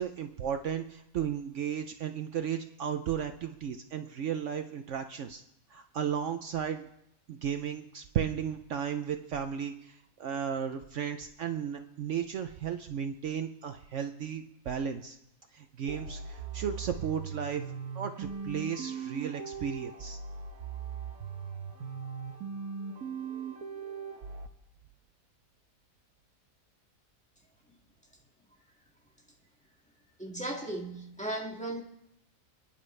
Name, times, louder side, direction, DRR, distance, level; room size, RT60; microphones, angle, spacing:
voice 1, 0.0-5.4 5.7-6.9 7.3-15.2 15.5-17.6 17.9-20.2, right 8 dB, 65° right, 1.0 m, -34 dB
sound 1, 15.9-24.5, right 6 dB, 85° right, 1.4 m, -39 dB
voice 2, 30.2-31.8, right 1 dB, 5° left, 1.9 m, -36 dB
28.5 x 10.0 x 3.3 m
omnidirectional pair, 1.5 m